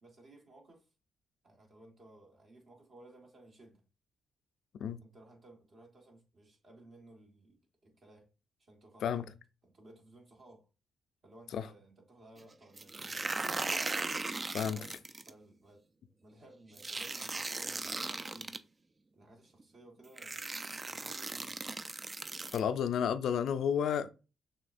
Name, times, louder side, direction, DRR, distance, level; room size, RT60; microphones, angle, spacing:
voice 1, 0.0-0.9 1.4-3.8 5.0-8.3 8.6-9.3 9.6-10.7 11.2-13.7 14.7-15.0 15.3-15.9 16.2-18.6 19.1-20.5 20.9-21.7, right 2 dB, 50° right, 1.6 m, -58 dB
sound 1, 12.8-15.3 16.8-18.6 19.6-19.7 20.2-22.6, right 3 dB, 35° right, 0.4 m, -38 dB
voice 2, 22.5-24.1, left 8 dB, 70° left, 0.4 m, -31 dB
6.5 x 2.3 x 2.5 m
supercardioid pair, 60°, 0 cm